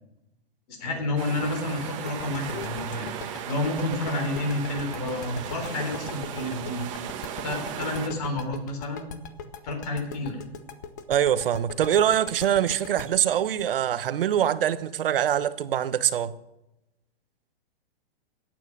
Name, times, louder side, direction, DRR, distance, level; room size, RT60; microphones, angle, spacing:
voice 1, 0.7-3.1 3.4-7.0 7.4-9.0 9.6-10.4, left 2 dB, 40° left, 3.6 m, -30 dB
sound 1, 1.0-3.7 3.9-6.7, left 3 dB, 60° left, 4.5 m, -47 dB
sound 2, 1.2-8.1, right 9 dB, 30° right, 1.3 m, -36 dB
sound 3, 2.1-14.8, left 7 dB, 20° left, 0.4 m, -41 dB
voice 2, 11.1-16.3, right 10 dB, 65° right, 0.9 m, -24 dB
14.5 x 9.1 x 6.1 m
hypercardioid pair, 170°, 30 cm